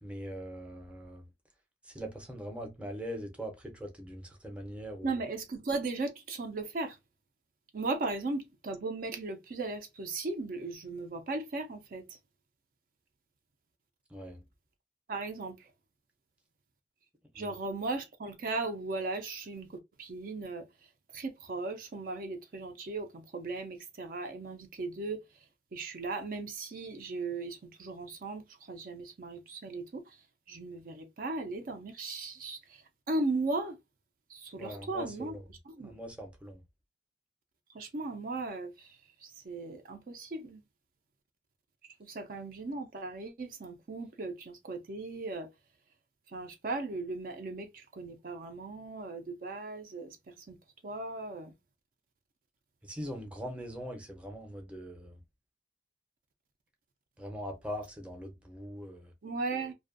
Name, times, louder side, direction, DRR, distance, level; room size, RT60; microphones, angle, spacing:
voice 1, 0.0-1.2 1.8-5.2 14.1-14.4 17.4-17.5 34.6-35.4 35.8-36.6 52.8-55.2 57.2-59.1, equal, 5° right, 0.6 m, -41 dB
voice 2, 5.0-7.0 7.7-12.2 15.1-15.7 17.3-19.7 20.0-20.7 21.1-25.2 25.7-30.2 30.5-33.8 34.3-35.4 35.7-35.9 37.7-40.6 42.0-45.5 46.3-50.6 50.8-51.5 59.2-59.7, right 3 dB, 50° right, 0.4 m, -37 dB
2.5 x 2.3 x 2.4 m
head